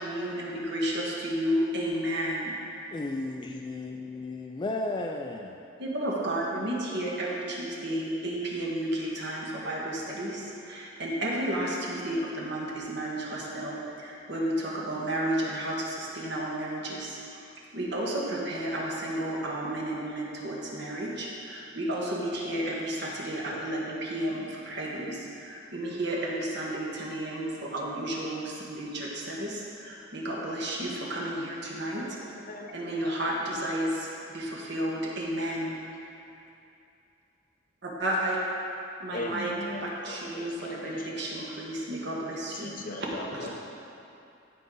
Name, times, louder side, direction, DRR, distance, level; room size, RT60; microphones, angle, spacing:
voice 1, 0.0-2.5 5.8-17.4 17.7-32.0 32.7-35.8 37.8-38.4 39.0-42.7 43.3-43.5, right 1 dB, 65° right, -4 dB, 1.6 m, -32 dB
voice 2, 2.9-5.6, left 2 dB, 25° left, 1 dB, 0.4 m, -34 dB
voice 3, 31.9-33.7 39.1-41.6 42.5-43.5, left 2 dB, 45° left, 2 dB, 0.8 m, -41 dB
14.5 x 5.1 x 3.9 m, 2.6 s
head